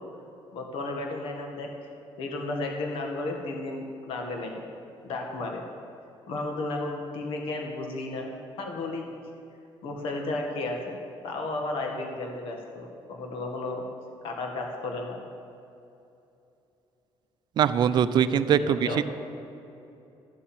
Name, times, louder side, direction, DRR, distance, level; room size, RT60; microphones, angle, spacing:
voice 1, 0.5-1.7 2.2-4.6 5.0-5.7 6.3-9.1 9.8-10.9 11.2-13.8 14.2-15.2 18.5-19.0, left 2 dB, 65° left, 2 dB, 1.7 m, -33 dB
voice 2, 17.6-19.0, right 8 dB, 50° right, 11 dB, 0.6 m, -22 dB
13.5 x 7.3 x 9.1 m, 2.8 s
cardioid pair, 170°, 10 cm